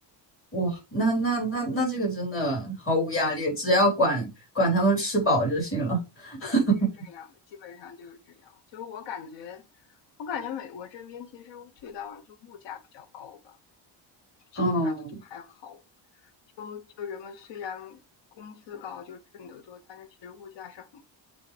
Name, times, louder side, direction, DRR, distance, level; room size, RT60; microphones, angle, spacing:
voice 1, 0.5-4.3 4.5-6.9 14.6-15.2, right 1 dB, 30° left, 3.8 m, -25 dB
voice 2, 7.6-8.2 8.7-9.6 10.2-13.5 14.5-14.9 15.3-15.8 16.6-18.0 18.4-21.0, left 7 dB, 75° left, 0.8 m, -41 dB
8.0 x 3.9 x 3.3 m
cardioid pair, 165°, 43 cm